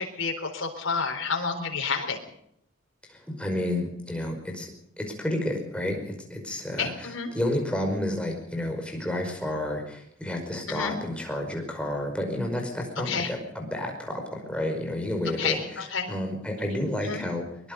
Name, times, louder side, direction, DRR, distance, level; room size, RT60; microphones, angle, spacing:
voice 1, 0.0-2.2 6.8-7.3 10.7-11.0 13.1-13.3 15.4-16.1 17.0-17.2, left 5 dB, 75° left, 3 dB, 4.1 m, -30 dB
voice 2, 3.1-4.7 5.0-17.7, left 1 dB, 5° left, 1 dB, 5.2 m, -31 dB
23.0 x 22.0 x 5.4 m, 0.71 s
head